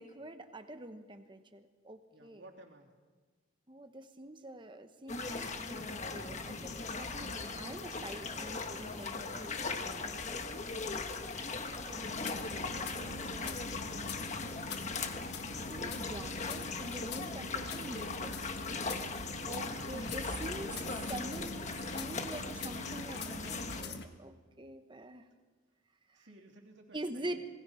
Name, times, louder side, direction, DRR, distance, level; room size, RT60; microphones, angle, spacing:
voice 1, 0.0-2.4 3.7-9.6 10.7-14.5 15.7-18.4 19.5-25.3 26.1-26.3 26.9-27.5, right 1 dB, 25° right, 8 dB, 1.1 m, -46 dB
voice 2, 2.1-2.9 26.1-27.4, right 2 dB, 60° right, 1 dB, 3.0 m, -56 dB
sound 1, 5.1-23.8, left 3 dB, 35° left, 1.4 m, -39 dB
sound 2, 12.0-24.1, left 2 dB, 50° left, 1.5 m, -44 dB
27.0 x 20.0 x 5.8 m, 1.4 s
head